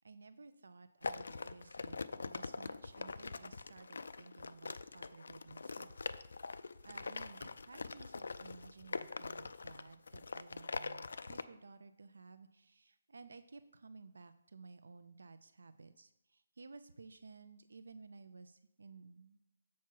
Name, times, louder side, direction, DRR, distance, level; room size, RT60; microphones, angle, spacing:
voice 1, 0.0-2.0 2.2-6.5 6.8-19.4, right 4 dB, 75° right, 11 dB, 0.4 m, -56 dB
Small box with some stuff shaking, 1.0-11.4, left 4 dB, 70° left, 0.3 m, -43 dB
7.2 x 5.7 x 4.6 m, 0.91 s
hypercardioid pair, 180°, 0 cm